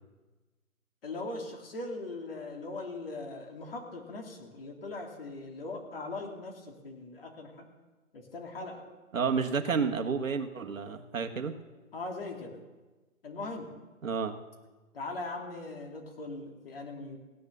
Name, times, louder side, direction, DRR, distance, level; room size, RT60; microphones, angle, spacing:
voice 1, 1.0-7.6 8.1-8.8 11.9-12.6 13.2-13.7 14.9-17.2, left 2 dB, 40° left, 2 dB, 2.7 m, -40 dB
voice 2, 9.1-11.5 14.0-14.3, right 5 dB, 65° right, 6 dB, 1.4 m, -30 dB
16.5 x 10.5 x 6.7 m, 1.2 s
hypercardioid pair, 165°, 43 cm